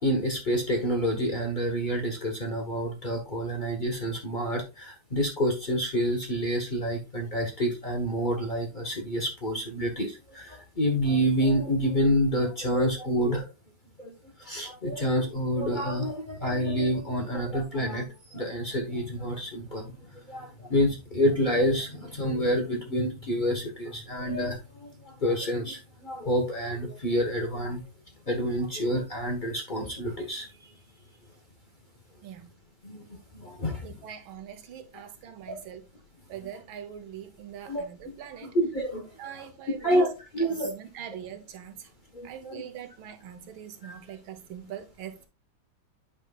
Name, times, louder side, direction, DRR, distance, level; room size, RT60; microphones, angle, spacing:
voice 1, 0.0-13.5 14.0-14.1 14.4-18.1 18.3-19.9 20.3-27.8 28.3-30.5 32.8-33.0 33.3-33.8 37.7-37.8 38.5-39.1 39.8-40.1 40.3-40.7 42.1-42.6 43.8-43.9, equal, 30° left, 1.0 m, -28 dB
voice 2, 33.8-35.9 36.3-38.6 39.2-40.0 40.4-41.9 42.2-45.3, right 9 dB, 90° right, 1.7 m, -42 dB
8.8 x 5.4 x 2.3 m
omnidirectional pair, 2.1 m